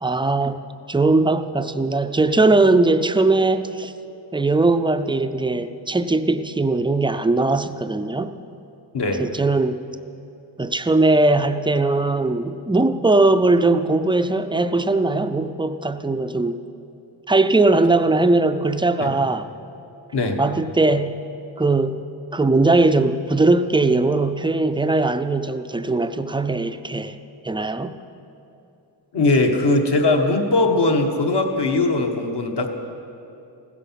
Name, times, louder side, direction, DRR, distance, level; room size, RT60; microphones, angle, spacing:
voice 1, 0.0-3.9 4.3-8.3 9.2-9.8 10.6-16.6 17.3-19.5 20.4-21.1 21.6-22.0 22.3-27.2 27.4-28.0, right 2 dB, 10° right, 10 dB, 0.4 m, -19 dB
voice 2, 29.1-32.7, left 2 dB, 60° left, 3 dB, 1.5 m, -20 dB
16.0 x 13.5 x 5.8 m, 2.8 s
wide cardioid pair, 165°, 45 cm